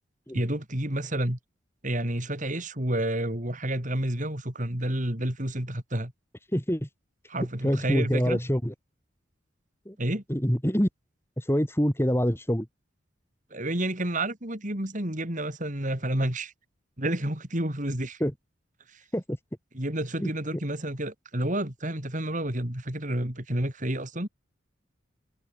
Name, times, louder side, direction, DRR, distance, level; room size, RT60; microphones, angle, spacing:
voice 1, 0.3-1.4 1.8-6.1 7.3-8.4 10.0-10.2 13.5-16.5 17.0-18.2 18.9-19.0 19.7-24.3, right 1 dB, 40° right, 4.0 m, -30 dB
voice 2, 6.5-6.9 7.6-8.7 9.9-10.0 10.3-10.9 11.4-12.7 18.2-18.3 19.1-19.4 20.2-20.3, equal, 10° left, 4.5 m, -25 dB
head